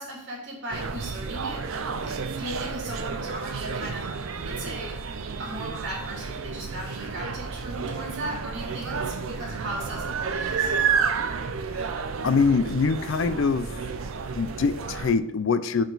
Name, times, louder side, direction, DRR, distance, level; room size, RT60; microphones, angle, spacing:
voice 1, 0.0-4.1 4.4-5.0 5.4-10.7, right 1 dB, 55° right, -3 dB, 2.9 m, -37 dB
sound 1, 0.7-15.1, right 5 dB, 75° right, 0.6 m, -31 dB
voice 2, 12.2-13.8 14.3-15.8, left 4 dB, 65° left, 14 dB, 0.4 m, -24 dB
6.7 x 6.1 x 4.0 m, 0.73 s
head